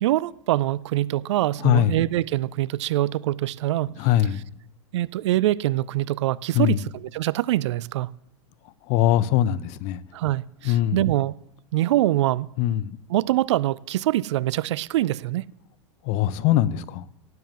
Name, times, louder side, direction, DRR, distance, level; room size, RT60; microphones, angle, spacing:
voice 1, 0.0-4.0 4.9-8.1 10.1-11.3 11.7-12.5 13.1-15.5, right 15 dB, 65° right, 0.5 m, -24 dB
voice 2, 1.6-2.0 4.0-4.4 6.5-6.8 8.9-10.0 10.6-11.0 12.6-13.0 16.0-17.0, left 12 dB, 45° left, 0.8 m, -21 dB
17.5 x 7.6 x 7.5 m
hypercardioid pair, 95°, 16 cm